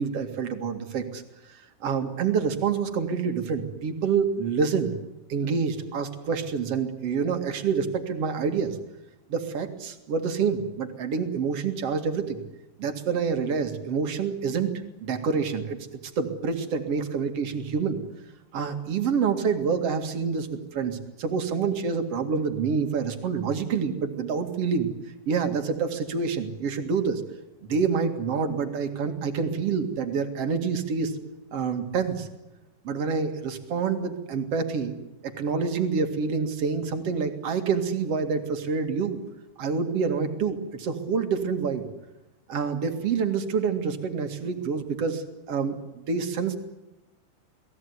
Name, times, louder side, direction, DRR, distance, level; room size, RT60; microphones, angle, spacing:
voice 1, 0.0-4.9 5.3-8.8 9.3-12.4 12.8-14.7 15.0-15.8 16.2-18.0 18.5-24.9 25.3-27.2 27.6-31.2 31.5-32.3 32.8-35.0 35.2-39.2 39.6-41.9 42.5-46.6, right 5 dB, 50° right, 6 dB, 1.8 m, -27 dB
28.5 x 19.0 x 9.6 m, 0.97 s
omnidirectional pair, 5.9 m